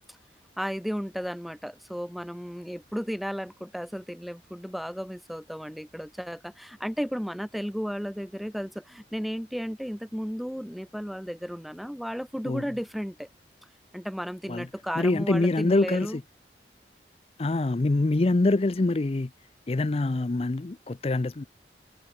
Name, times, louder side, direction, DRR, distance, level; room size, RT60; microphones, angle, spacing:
voice 1, 0.6-13.3 13.9-16.2, equal, ahead, 0.8 m, -34 dB
voice 2, 15.0-16.2 17.4-19.3 19.7-21.4, left 2 dB, 35° left, 0.5 m, -25 dB
head